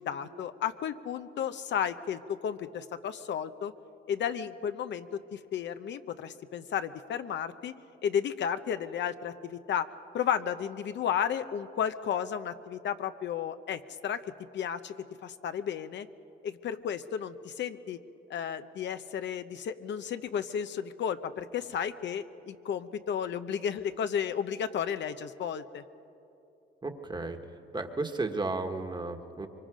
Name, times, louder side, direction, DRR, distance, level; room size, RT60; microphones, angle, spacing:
voice 1, 0.0-3.7 4.1-7.7 8.0-9.9 10.1-14.2 14.5-14.9 15.2-16.1 16.4-18.0 18.3-25.8, left 8 dB, 65° left, 10 dB, 0.8 m, -33 dB
voice 2, 26.8-27.4 27.7-29.5, right 3 dB, 20° right, 6 dB, 1.5 m, -33 dB
24.0 x 24.0 x 5.1 m, 2.8 s
cardioid pair, 90°, 20 cm